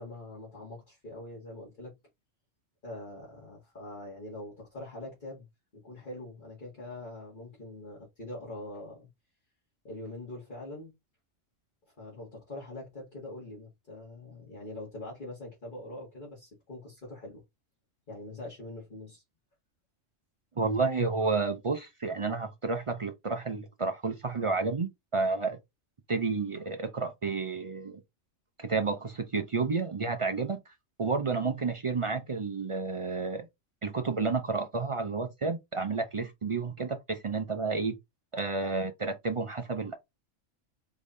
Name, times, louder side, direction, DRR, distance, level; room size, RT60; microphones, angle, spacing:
voice 1, 0.0-2.0 2.8-5.5 5.7-9.1 9.8-10.9 11.9-17.4 18.1-19.2, left 1 dB, 40° left, 2.0 m, -43 dB
voice 2, 20.6-25.6 26.1-28.0 28.6-30.6 31.0-33.5 33.8-38.0 38.3-39.9, right 4 dB, 55° right, 0.3 m, -31 dB
4.8 x 3.5 x 2.6 m
omnidirectional pair, 1.3 m